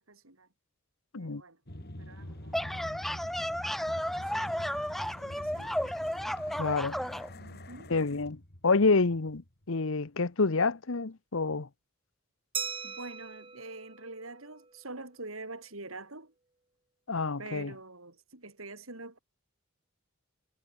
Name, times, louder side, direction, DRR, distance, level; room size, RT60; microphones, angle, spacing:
voice 1, 0.1-0.5 1.1-1.6 2.0-3.0 4.1-5.8 7.4-7.9 12.8-16.3 17.4-19.2, right 2 dB, 75° right, 5.9 m, -46 dB
sound 1, 1.7-9.8, left 1 dB, 50° left, 3.5 m, -46 dB
sound 2, 2.3-7.3, equal, ahead, 0.4 m, -33 dB
voice 2, 6.6-7.0 7.9-11.7 17.1-17.7, left 3 dB, 70° left, 1.0 m, -28 dB
Glass, 12.5-15.0, right 6 dB, 25° right, 3.9 m, -40 dB
head